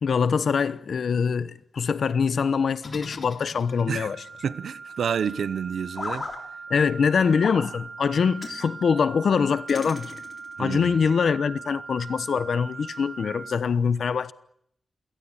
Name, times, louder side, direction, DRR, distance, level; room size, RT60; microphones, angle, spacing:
voice 1, 0.0-4.2 6.7-10.1 10.6-14.3, left 6 dB, 60° left, 1.0 m, -24 dB
sound 1, 2.8-4.0 5.9-6.4 7.4-7.7 8.4-8.6 9.7-10.5, left 4 dB, 40° left, 3.5 m, -36 dB
sound 2, 3.6-13.6, right 4 dB, 30° right, 1.5 m, -41 dB
voice 2, 4.4-6.3 10.6-11.0, right 7 dB, 80° right, 1.1 m, -29 dB
28.0 x 17.5 x 8.9 m
wide cardioid pair, 150°, 0 cm